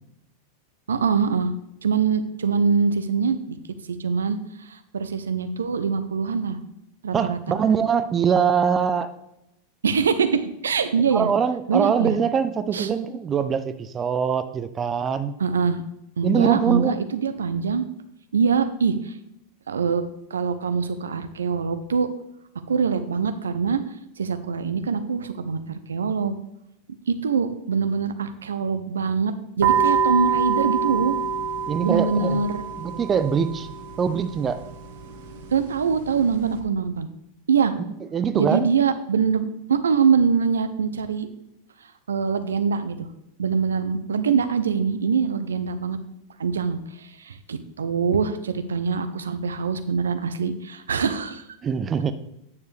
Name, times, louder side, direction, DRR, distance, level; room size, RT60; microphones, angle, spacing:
voice 1, 0.9-1.5 1.8-3.6 3.9-6.6 7.0-7.4 9.8-11.3 11.7-12.2 12.7-12.9 15.4-15.8 16.2-17.9 18.3-19.2 19.7-20.0 20.3-22.1 22.7-23.8 24.2-26.4 27.1-31.1 31.8-32.6 35.5-37.1 37.5-37.7 38.4-41.3 41.8-43.1 43.4-46.0 46.4-51.5, right 5 dB, 80° right, 10 dB, 0.6 m, -24 dB
voice 2, 7.1-9.1 11.0-15.3 16.2-17.0 31.7-32.4 32.8-33.7 34.0-34.6 38.1-38.7 51.6-52.1, right 7 dB, 25° right, 11 dB, 0.6 m, -23 dB
sound 1, 29.6-36.6, right 7 dB, 65° right, 1.3 m, -27 dB
9.5 x 6.7 x 3.4 m, 0.83 s
hypercardioid pair, 95°, 0 cm